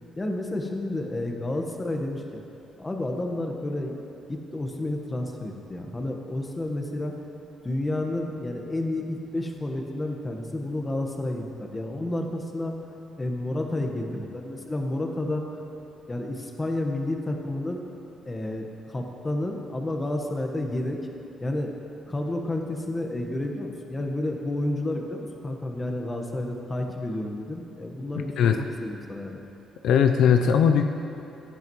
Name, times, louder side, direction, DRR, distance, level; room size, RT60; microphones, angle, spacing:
voice 1, 0.2-2.4 2.8-3.9 4.3-7.1 7.6-12.7 13.2-15.5 16.1-17.8 18.2-21.0 21.4-21.7 22.1-29.4, left 1 dB, 20° left, 2 dB, 1.3 m, -30 dB
voice 2, 28.2-28.6 29.8-30.8, left 7 dB, 80° left, 6 dB, 0.5 m, -19 dB
16.0 x 10.5 x 3.1 m, 2.8 s
cardioid pair, 90°, 0 cm